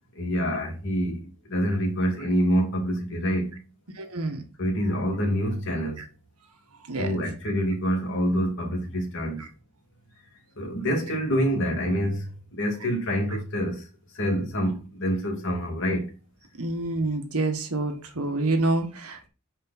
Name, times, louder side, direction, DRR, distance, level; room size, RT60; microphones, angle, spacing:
voice 1, 0.2-3.6 4.6-6.0 7.0-9.4 10.6-13.8 14.2-16.1, equal, 60° left, 2.4 m, -26 dB
voice 2, 4.0-4.4 6.9-7.2 16.6-19.3, right 2 dB, 85° right, 1.6 m, -27 dB
7.2 x 5.0 x 4.2 m
head